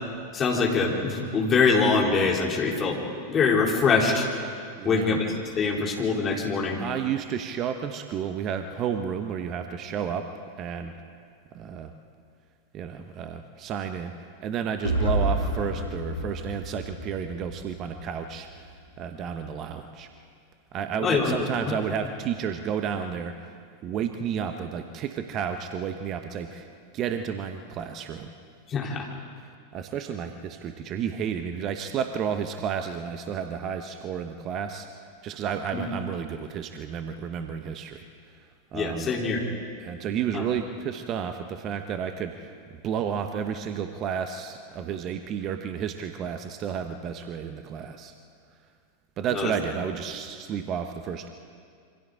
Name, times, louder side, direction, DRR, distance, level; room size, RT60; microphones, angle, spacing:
voice 1, 0.3-3.0 3.3-4.3 4.8-6.8 21.0-21.8 28.7-29.1 35.7-35.8 38.7-39.4 40.3-40.4 49.3-49.5, left 4 dB, 25° left, -1 dB, 3.7 m, -24 dB
voice 2, 4.8-5.2 6.8-10.3 10.6-10.9 11.5-11.9 12.7-14.1 14.4-18.5 19.0-20.1 20.7-23.5 23.8-26.7 26.9-28.3 29.7-34.9 35.2-38.0 38.7-39.1 39.8-48.1 49.2-51.3, right 8 dB, 35° right, 7 dB, 1.1 m, -31 dB
sound 1, 14.8-18.7, right 1 dB, 80° left, 3.4 m, -30 dB
27.5 x 25.0 x 3.8 m, 2.2 s
figure-of-eight pair, 90°, 0 cm